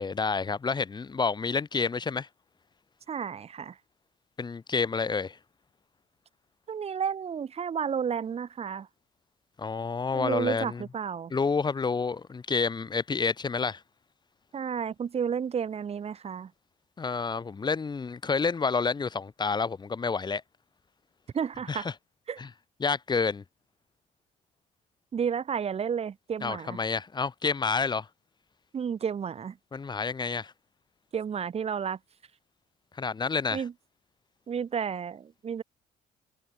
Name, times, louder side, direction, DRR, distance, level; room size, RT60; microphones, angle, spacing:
voice 1, 0.0-2.3 4.4-5.4 9.6-10.8 11.3-13.8 17.0-20.4 21.7-21.9 22.4-22.5 22.8-23.4 26.4-28.1 29.7-30.5 33.0-33.6, left 5 dB, 25° left, 1.9 m, -29 dB
voice 2, 3.1-3.8 6.7-8.9 10.1-11.3 14.5-16.5 21.3-21.9 22.3-22.4 25.1-26.8 28.7-29.6 31.1-32.0 33.5-33.7 34.5-35.6, right 7 dB, 35° right, 1.7 m, -31 dB
cardioid pair, 110°, 17 cm